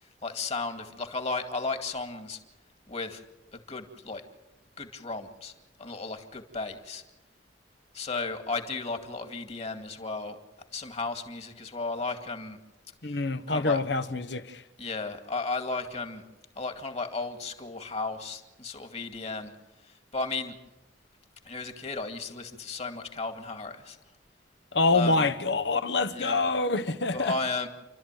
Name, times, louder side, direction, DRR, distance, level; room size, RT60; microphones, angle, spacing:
voice 1, 0.0-2.4 2.9-3.2 3.5-4.3 4.8-5.5 5.8-7.0 7.9-10.4 10.7-12.6 13.5-13.8 14.8-16.2 16.6-19.5 19.8-20.6 21.4-24.0 24.9-25.3 26.1-26.4 27.1-27.7, left 3 dB, 35° left, 2.2 m, -34 dB
voice 2, 13.0-14.6 24.7-27.4, left 3 dB, 65° left, 1.2 m, -26 dB
30.0 x 13.0 x 9.1 m
head